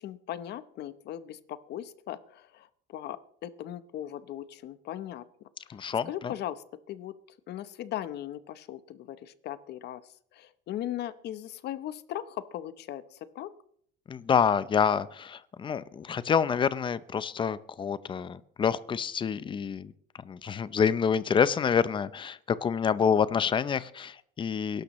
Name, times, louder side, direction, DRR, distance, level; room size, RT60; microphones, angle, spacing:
voice 1, 0.0-3.2 3.4-5.2 5.7-7.1 7.5-10.0 10.3-13.5, left 12 dB, 60° left, 14 dB, 0.9 m, -38 dB
voice 2, 5.7-6.3 14.1-19.9 20.2-24.8, left 7 dB, 25° left, 16 dB, 0.6 m, -27 dB
22.0 x 12.0 x 3.1 m, 0.64 s
cardioid pair, 145°, 20 cm